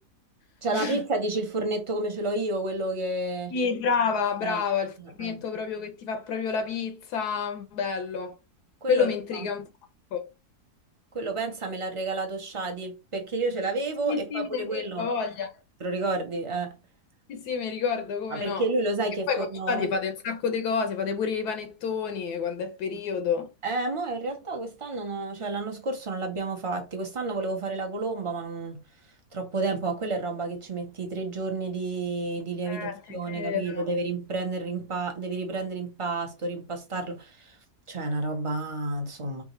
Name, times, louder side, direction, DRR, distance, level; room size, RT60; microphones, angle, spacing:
voice 1, 0.6-3.5 4.4-4.6 5.0-5.4 8.8-9.5 11.1-15.0 15.8-16.7 18.3-19.9 23.6-28.8 29.3-37.6 37.9-39.4, right 2 dB, 30° right, 0.7 m, -30 dB
voice 2, 3.5-8.3 8.9-9.7 10.1-10.3 14.0-15.5 17.3-18.6 19.3-23.5 32.7-33.0 33.3-33.9, left 6 dB, 75° left, 1.2 m, -29 dB
4.7 x 2.5 x 3.1 m
omnidirectional pair, 1.8 m